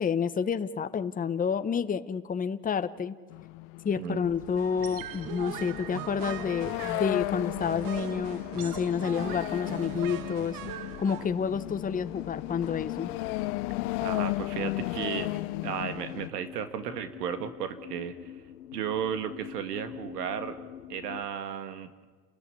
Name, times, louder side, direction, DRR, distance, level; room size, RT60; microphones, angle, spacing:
voice 1, 0.0-3.2 3.8-10.6 11.0-13.1, left 6 dB, 15° left, 11 dB, 1.0 m, -29 dB
sound 1, 3.3-16.3, left 20 dB, 60° left, 0.9 m, -35 dB
sound 2, 4.6-11.3, right 13 dB, 45° right, 1.1 m, -41 dB
sound 3, 7.9-21.2, left 10 dB, 90° left, 1.3 m, -47 dB
voice 2, 14.0-15.3 15.6-18.3 18.7-20.6 20.9-21.9, right 8 dB, 80° right, 9 dB, 2.0 m, -34 dB
29.5 x 14.0 x 9.9 m, 1.4 s
hypercardioid pair, 95°, 47 cm